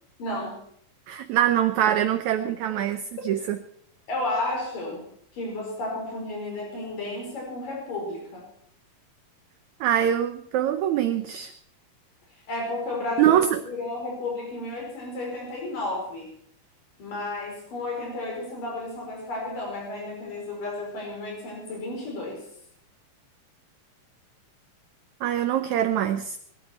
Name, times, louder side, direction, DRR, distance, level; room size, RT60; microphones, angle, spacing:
voice 1, 0.2-0.6 4.1-5.1 5.3-8.5 12.5-16.3 17.0-22.4, left 2 dB, 70° left, 0 dB, 6.5 m, -32 dB
voice 2, 1.1-3.6 9.8-11.5 13.2-13.6 25.2-26.4, right 11 dB, 70° right, 9 dB, 1.9 m, -23 dB
22.5 x 12.5 x 4.5 m, 0.67 s
omnidirectional pair, 4.0 m